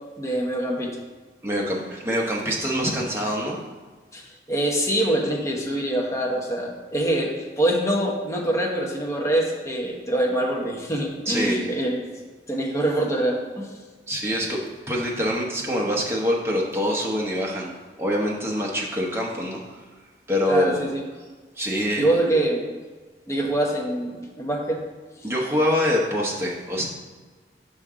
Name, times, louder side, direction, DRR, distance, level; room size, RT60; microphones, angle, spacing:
voice 1, 0.2-1.0 4.1-4.2 4.5-12.0 12.5-13.7 20.5-21.0 22.0-22.6 23.3-24.8, right 1 dB, 15° left, -1 dB, 0.8 m, -24 dB
voice 2, 1.4-3.6 11.3-11.7 14.1-17.7 18.0-19.8 20.3-20.9 21.6-22.0 25.2-26.9, equal, 15° right, -3 dB, 0.9 m, -25 dB
5.8 x 5.2 x 3.7 m, 1.4 s
head